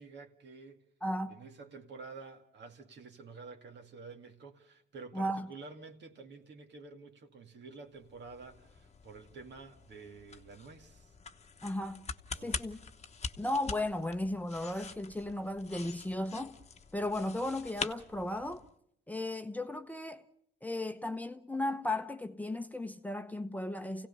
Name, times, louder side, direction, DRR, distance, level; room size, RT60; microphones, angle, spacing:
voice 1, 0.0-0.8 1.3-11.2 12.4-12.6, right 4 dB, 60° right, 2.4 m, -50 dB
voice 2, 1.0-1.4 5.1-5.5 11.6-12.0 12.4-12.8 13.4-16.6 16.9-18.6 19.1-20.2 20.6-24.1, left 1 dB, 10° left, 0.9 m, -35 dB
sound 1, 7.9-18.7, left 5 dB, 35° left, 1.1 m, -45 dB
29.0 x 17.0 x 5.6 m
cardioid pair, 90°, 20 cm